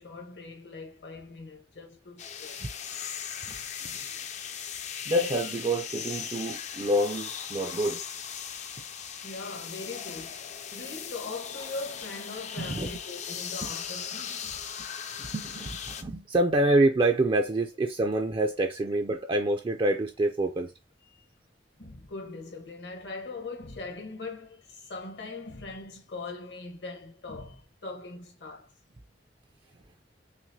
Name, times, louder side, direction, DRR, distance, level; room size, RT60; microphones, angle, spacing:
voice 1, 0.0-2.6 3.5-3.6 9.2-14.6 21.0-21.2 21.8-28.7, left 3 dB, 70° left, 1.1 m, -41 dB
sound 1, 2.2-16.0, left 8 dB, 40° left, 0.4 m, -38 dB
voice 2, 5.1-8.0 12.6-12.9 13.6-13.7 15.2-20.7, right 1 dB, 30° right, 0.3 m, -27 dB
5.9 x 2.1 x 2.7 m
head